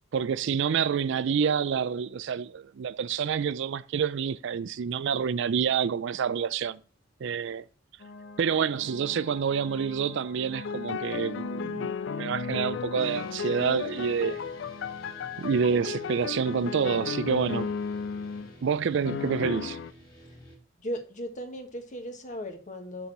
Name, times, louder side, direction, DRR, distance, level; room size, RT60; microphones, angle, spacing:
voice 1, 0.1-6.8 7.2-7.6 8.4-11.9 12.2-14.4 15.4-17.7 18.6-19.8, right 6 dB, 65° right, 0.4 m, -28 dB
sound 1, 8.0-18.2, left 2 dB, 80° left, 1.2 m, -45 dB
sound 2, 10.5-18.5 19.1-19.9, left 6 dB, 65° left, 0.4 m, -34 dB
sound 3, 13.0-20.6, equal, 20° left, 2.8 m, -51 dB
voice 2, 20.8-23.1, equal, 40° left, 1.4 m, -37 dB
7.0 x 6.2 x 3.8 m
head